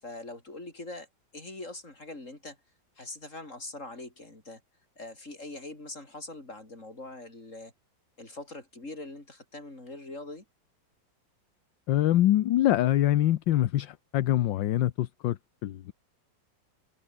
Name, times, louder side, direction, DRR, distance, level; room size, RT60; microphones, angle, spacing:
voice 1, 0.0-1.1 1.3-2.6 3.0-4.6 5.0-7.7 8.2-10.4, left 2 dB, 40° left, 5.9 m, -42 dB
voice 2, 11.9-15.9, left 13 dB, 75° left, 1.5 m, -25 dB
omnidirectional pair, 2.1 m